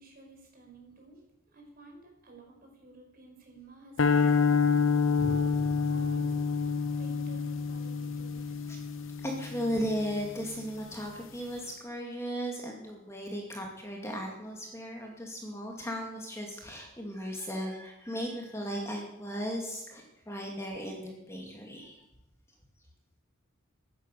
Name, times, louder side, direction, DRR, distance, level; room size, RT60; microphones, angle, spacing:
voice 1, 0.0-5.5 5.8-6.4 7.0-8.6, right 2 dB, 40° right, 1 dB, 5.1 m, -54 dB
sound 1, 4.0-10.3, left 5 dB, 60° left, 0.9 m, -28 dB
sound 2, 5.2-9.8, left 1 dB, 85° right, 6.3 m, -47 dB
voice 2, 9.2-22.0, equal, 15° left, 0 dB, 2.3 m, -36 dB
15.0 x 11.5 x 6.7 m, 0.90 s
head